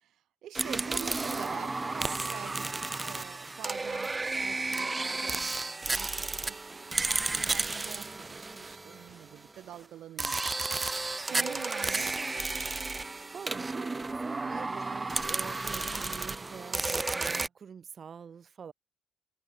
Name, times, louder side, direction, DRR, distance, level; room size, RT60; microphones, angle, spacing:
voice 1, 0.1-10.4 11.2-12.2, right 12 dB, 75° right, 5.4 m, -46 dB
sound 1, 0.5-9.4 10.2-17.5, right 3 dB, 20° right, 2.0 m, -33 dB
voice 2, 2.5-2.9 7.3-7.7 11.3-11.6 13.3-18.7, right 7 dB, 50° right, 6.4 m, -46 dB
cardioid pair, 90°, 0 cm